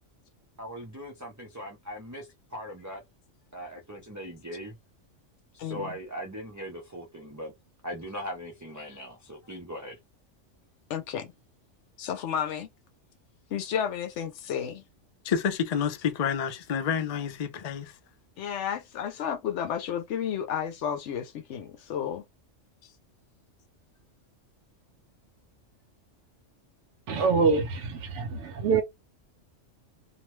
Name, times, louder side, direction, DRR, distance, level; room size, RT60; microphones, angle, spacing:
voice 1, 0.6-3.0 3.5-4.8 5.5-7.5 7.8-10.0, equal, 30° right, 0.3 m, -40 dB
voice 2, 5.6-5.9 10.9-11.3 12.0-12.7 13.5-14.8 18.4-22.2, left 8 dB, 70° left, 0.9 m, -32 dB
voice 3, 15.2-17.9, left 7 dB, 55° left, 0.4 m, -29 dB
voice 4, 27.1-28.8, right 4 dB, 75° right, 1.0 m, -25 dB
2.6 x 2.2 x 3.0 m
omnidirectional pair, 1.3 m